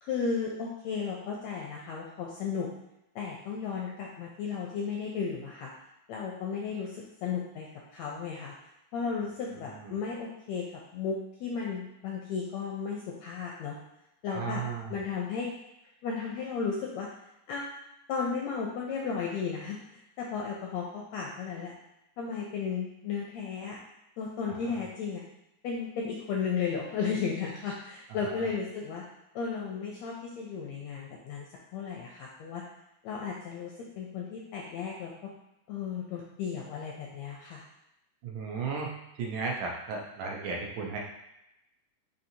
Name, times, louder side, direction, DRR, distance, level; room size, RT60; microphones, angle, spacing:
voice 1, 0.0-2.7 3.1-5.7 6.1-7.7 7.9-8.5 8.9-10.6 10.9-13.8 14.2-14.6 14.9-15.5 16.0-17.1 17.5-17.7 18.1-21.7 22.2-23.8 24.2-25.2 25.6-29.0 29.3-32.6 33.0-35.3 35.7-37.6, left 5 dB, 80° left, -2 dB, 1.6 m, -34 dB
voice 2, 9.5-9.9 14.3-15.0 24.7-24.8 28.3-28.5 38.2-38.9 39.2-41.0, right 4 dB, 75° right, -1 dB, 2.1 m, -35 dB
5.8 x 2.8 x 2.7 m, 0.87 s
omnidirectional pair, 3.6 m